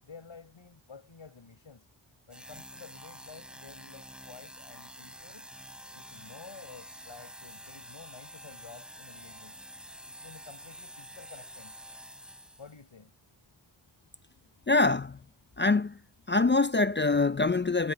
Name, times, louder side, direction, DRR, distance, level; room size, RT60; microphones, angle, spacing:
voice 1, 0.0-1.9 2.3-5.5 5.9-9.6 10.1-11.8 12.6-13.1, left 5 dB, 70° left, 6.6 m, -51 dB
sound 1, 2.3-12.9, equal, ahead, 4.3 m, -48 dB
voice 2, 14.7-15.2 15.6-16.0 16.3-17.9, left 3 dB, 25° left, 0.4 m, -24 dB
wide cardioid pair, 70°, 48 cm